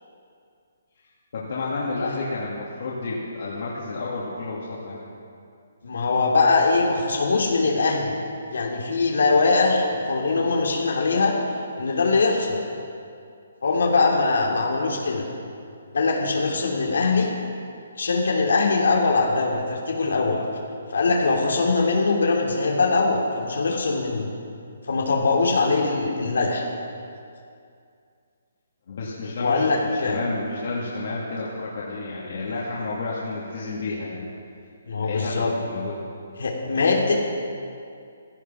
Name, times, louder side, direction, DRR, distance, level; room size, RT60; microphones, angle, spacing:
voice 1, 1.3-5.0 28.9-29.7 30.0-34.2 34.9-36.0, left 3 dB, 50° left, -7 dB, 2.9 m, -30 dB
voice 2, 5.8-8.2 8.5-11.3 11.8-12.6 13.6-15.2 15.9-17.3 18.0-20.4 20.9-24.3 24.9-26.7 29.4-30.2 34.9-35.5 36.4-37.1, left 3 dB, 80° left, -1 dB, 2.9 m, -22 dB
16.5 x 14.0 x 6.0 m, 2.4 s
hypercardioid pair, 170°, 0 cm